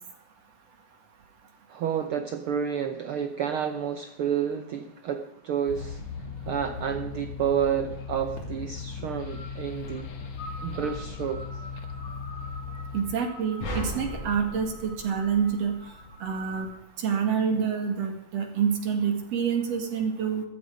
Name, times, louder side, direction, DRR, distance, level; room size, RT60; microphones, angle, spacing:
voice 1, 1.7-10.1 10.6-11.4, right 8 dB, 75° right, 8 dB, 1.2 m, -30 dB
sound 1, 5.7-13.2, left 5 dB, 65° left, 2.4 m, -38 dB
sound 2, 8.1-16.6, equal, 50° left, 4.1 m, -46 dB
voice 2, 12.9-15.8 16.2-16.7 17.0-20.4, right 7 dB, 55° right, 5 dB, 3.0 m, -27 dB
sound 3, 13.6-16.0, equal, 90° left, 6.5 m, -36 dB
14.5 x 13.0 x 5.2 m, 0.78 s
omnidirectional pair, 3.5 m